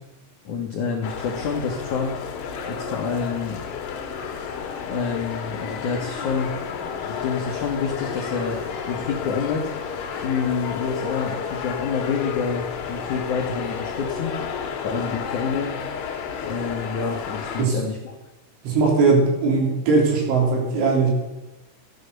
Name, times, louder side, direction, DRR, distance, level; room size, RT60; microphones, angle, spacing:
voice 1, 0.4-2.1 2.7-3.6 4.8-6.5 6.8-8.6 8.8-9.7 10.2-14.4 14.8-15.7 16.4-18.1, left 5 dB, 85° left, 1 dB, 1.7 m, -28 dB
sound 1, 1.0-17.7, left 6 dB, 65° left, 3.3 m, -31 dB
voice 2, 18.6-21.1, right 4 dB, 70° right, -1 dB, 5.7 m, -19 dB
15.0 x 9.7 x 6.8 m, 1.0 s
omnidirectional pair, 5.7 m